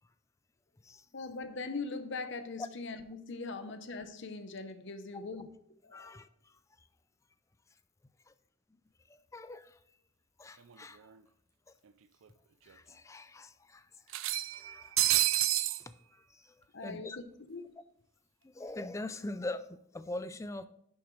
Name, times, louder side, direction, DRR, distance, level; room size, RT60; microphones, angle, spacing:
voice 1, 1.1-5.5 5.8-6.1 16.7-17.2 17.5-17.8, left 3 dB, 55° left, 9 dB, 0.8 m, -41 dB
voice 2, 5.9-6.9 8.3-8.4 9.1-9.8 10.4-11.1 11.7-11.8 12.6-13.9 14.3-17.2 18.4-20.7, left 2 dB, 15° left, 13 dB, 0.3 m, -44 dB
sound 1, 10.7-10.8 11.1-11.2 12.2-12.3 12.7-12.8 14.1-15.8, right 16 dB, 70° right, 0.4 m, -29 dB
11.0 x 7.1 x 3.2 m, 0.75 s
head